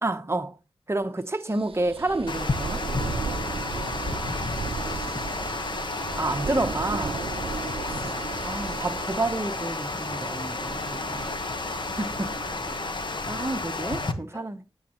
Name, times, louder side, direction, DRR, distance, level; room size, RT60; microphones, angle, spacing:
voice 1, 0.0-0.6 0.9-2.8 6.2-7.2 7.9-8.1 8.4-11.2 12.0-12.4 13.3-14.6, right 2 dB, 25° right, 1.0 m, -29 dB
sound 1, 1.5-13.2, right 5 dB, 70° right, 0.6 m, -36 dB
Water, 2.3-14.1, left 3 dB, 50° left, 1.2 m, -32 dB
voice 2, 13.6-14.5, left 1 dB, 25° left, 6.1 m, -47 dB
19.0 x 7.3 x 3.0 m
wide cardioid pair, 95°, 10 cm